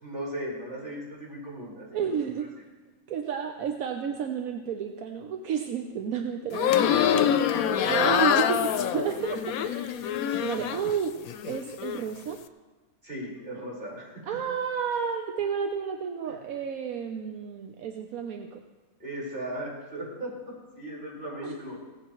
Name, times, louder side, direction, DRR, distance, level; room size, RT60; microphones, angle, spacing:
voice 1, 0.0-1.9 2.4-2.5 7.8-8.2 8.7-9.3 13.0-14.2 16.3-16.4 19.0-21.8, right 1 dB, 35° right, -6 dB, 4.8 m, -37 dB
voice 2, 1.9-2.5 3.1-10.0 10.4-11.1 11.4-12.4 14.3-18.6 21.4-21.5, right 7 dB, 80° right, 4 dB, 1.2 m, -31 dB
sound 1, 6.5-10.9 11.3-12.0, left 9 dB, 90° left, 1.1 m, -25 dB
17.5 x 15.0 x 3.1 m, 1.2 s
omnidirectional pair, 1.5 m